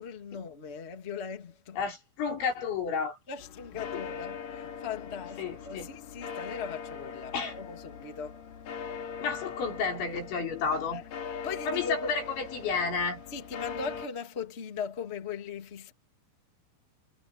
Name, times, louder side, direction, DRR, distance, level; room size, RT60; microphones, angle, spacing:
voice 1, 0.0-1.8 3.3-8.4 10.9-12.2 13.3-15.9, left 6 dB, 20° left, 1.7 m, -39 dB
voice 2, 1.8-3.2 3.9-4.0 5.4-5.9 7.3-7.6 9.2-11.0 11.7-13.2, left 5 dB, 90° left, 7.7 m, -31 dB
sound 1, 3.4-14.1, left 6 dB, 55° left, 3.7 m, -41 dB
omnidirectional pair, 5.1 m